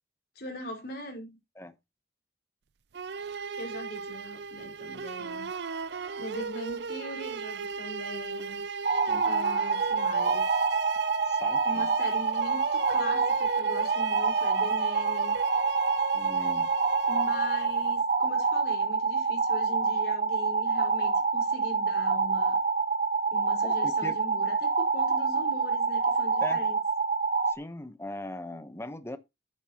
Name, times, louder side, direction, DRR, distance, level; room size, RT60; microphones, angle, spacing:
voice 1, 0.3-1.4 3.6-5.5 6.2-8.6 9.2-10.5 11.6-15.3 17.1-22.6 23.3-26.8, equal, 60° left, 4.9 m, -41 dB
sound 1, 2.9-18.0, right 5 dB, 65° right, 0.5 m, -37 dB
sound 2, 8.8-27.5, right 4 dB, 45° right, 0.9 m, -27 dB
voice 2, 11.2-11.9 16.1-16.7 23.6-24.2 26.4-26.6 27.5-29.2, left 1 dB, 15° left, 1.0 m, -40 dB
10.0 x 10.0 x 3.0 m
head